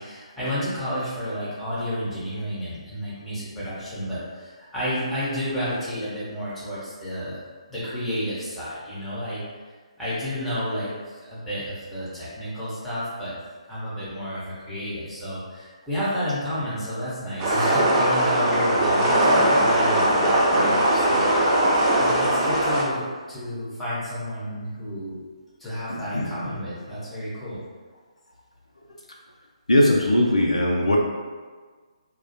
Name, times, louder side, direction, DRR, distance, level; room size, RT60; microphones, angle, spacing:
voice 1, 0.0-7.4 7.7-9.4 10.0-13.4 13.6-21.6 22.0-25.2 25.6-27.6, equal, 5° left, -11 dB, 0.7 m, -31 dB
sound 1, 17.4-22.8, right 1 dB, 20° right, 0.3 m, -20 dB
voice 2, 25.9-26.3 29.7-31.0, left 1 dB, 75° left, -2 dB, 0.3 m, -20 dB
2.3 x 2.0 x 2.6 m, 1.5 s
figure-of-eight pair, 140°, 4 cm